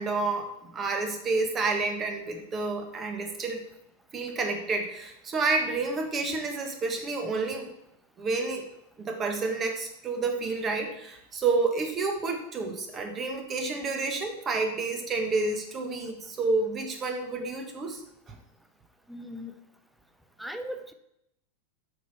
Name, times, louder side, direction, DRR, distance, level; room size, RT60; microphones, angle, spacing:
voice 1, 0.0-3.6 4.1-7.7 8.2-8.7 9.0-18.0 18.3-18.4, right 3 dB, 25° right, 4 dB, 1.5 m, -29 dB
voice 2, 19.1-19.5 20.4-20.9, equal, ahead, 7 dB, 0.8 m, -38 dB
8.1 x 6.0 x 4.6 m, 0.80 s
figure-of-eight pair, 90°, 0 cm